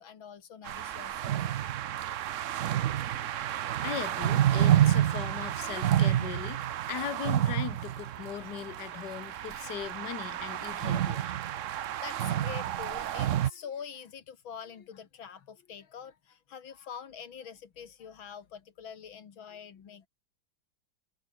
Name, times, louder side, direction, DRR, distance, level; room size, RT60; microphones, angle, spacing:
voice 1, 0.0-1.3 12.0-20.1, left 7 dB, 85° left, 2.6 m, -45 dB
sound 1, 0.6-13.5, right 11 dB, 75° right, 0.7 m, -29 dB
voice 2, 3.8-11.2, left 10 dB, 60° left, 1.7 m, -39 dB
omnidirectional pair, 2.1 m